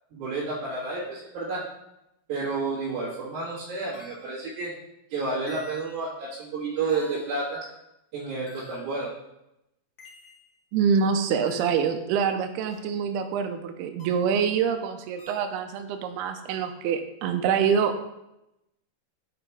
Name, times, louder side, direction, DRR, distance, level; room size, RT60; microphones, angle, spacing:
voice 1, 0.1-1.6 2.3-4.7 5.1-7.6 8.1-9.1, right 3 dB, 60° right, -10 dB, 3.3 m, -30 dB
sound 1, 2.9-3.0 3.9-4.4 5.5-6.1 6.9-7.5 8.5-9.0 10.0-10.6 11.5-11.9 12.7-12.8 14.0-14.3 15.2-15.5, left 3 dB, 55° left, 1.8 m, -50 dB
voice 2, 10.7-18.1, right 6 dB, 85° right, 6 dB, 2.4 m, -25 dB
7.7 x 5.1 x 4.6 m, 0.86 s
omnidirectional pair, 5.0 m